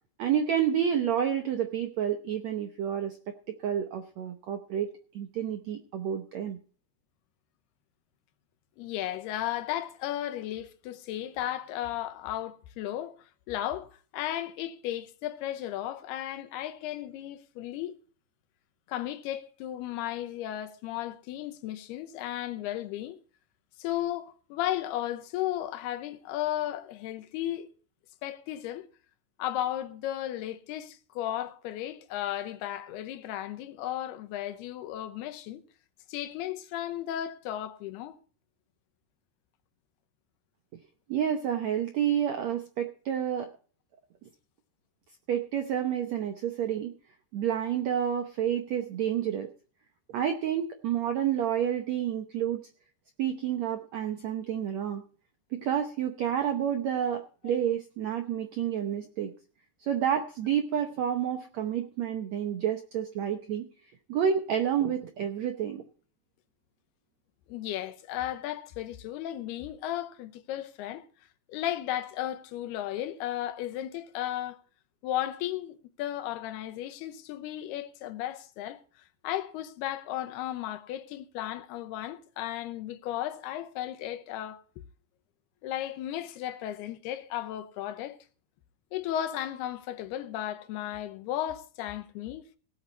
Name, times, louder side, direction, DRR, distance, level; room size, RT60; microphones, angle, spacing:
voice 1, 0.2-3.2 3.6-4.9 5.1-6.6 41.1-43.5 45.3-46.9 47.3-49.5 50.1-52.6 53.2-55.0 55.5-59.3 59.8-63.7 64.1-65.8, right 9 dB, 75° right, 1.6 m, -29 dB
voice 2, 8.8-13.1 13.5-18.0 18.9-23.2 23.8-27.7 28.2-28.9 29.4-35.6 36.1-38.2 67.5-71.0 71.5-74.6 75.0-78.8 79.2-84.6 85.6-88.2 88.9-92.6, left 12 dB, 80° left, 2.9 m, -35 dB
18.0 x 8.7 x 4.1 m
omnidirectional pair, 4.6 m